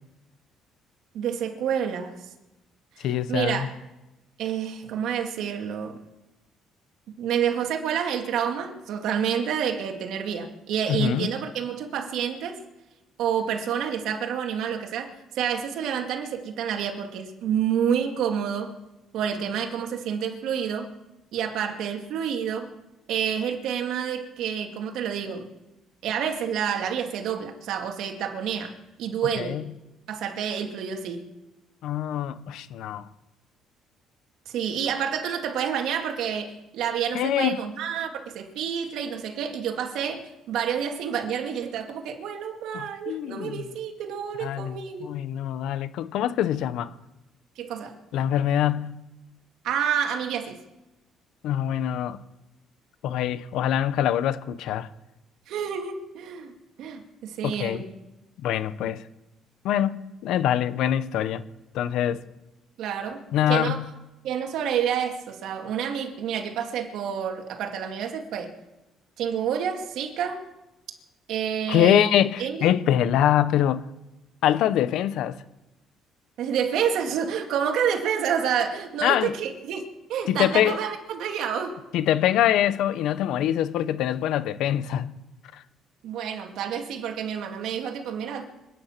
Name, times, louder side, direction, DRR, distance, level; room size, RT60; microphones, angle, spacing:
voice 1, 1.1-2.1 3.0-3.7 4.4-6.0 7.2-12.6 13.2-18.7 19.1-20.9 21.3-22.7 23.1-25.5 26.0-28.7 29.0-29.6 30.1-31.3 34.5-45.2 47.6-48.0 49.6-50.6 55.5-57.8 62.8-63.8 64.2-68.5 69.2-70.4 71.3-72.7 76.4-81.8 86.0-88.5, right 8 dB, 75° right, 2.2 m, -29 dB
voice 2, 3.0-3.7 10.9-11.3 29.4-29.6 31.8-33.1 37.1-37.6 42.7-43.6 44.4-46.9 48.1-49.0 51.4-52.2 53.0-54.9 57.4-57.8 58.4-59.0 59.6-61.4 61.7-62.2 63.3-63.8 71.7-73.8 74.4-75.4 79.0-79.3 80.3-80.8 81.9-85.2 85.5-85.6, left 11 dB, 75° left, 0.8 m, -24 dB
25.5 x 9.6 x 5.9 m
cardioid pair, 120°, 0 cm